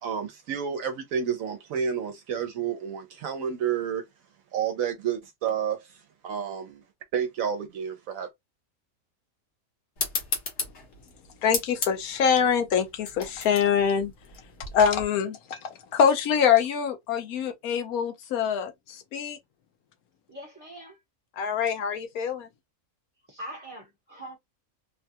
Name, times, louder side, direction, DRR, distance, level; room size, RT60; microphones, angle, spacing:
voice 1, 0.0-4.0 4.5-6.8 7.1-8.3, right 7 dB, 75° right, 1.0 m, -30 dB
sound 1, 10.0-15.0, left 4 dB, 55° left, 1.3 m, -34 dB
voice 2, 11.4-14.1 14.7-15.6 15.9-19.4 21.4-22.5, left 7 dB, 90° left, 1.2 m, -24 dB
voice 3, 20.3-21.0 23.3-24.4, right 1 dB, 15° right, 0.9 m, -42 dB
3.1 x 2.3 x 2.7 m
omnidirectional pair, 1.5 m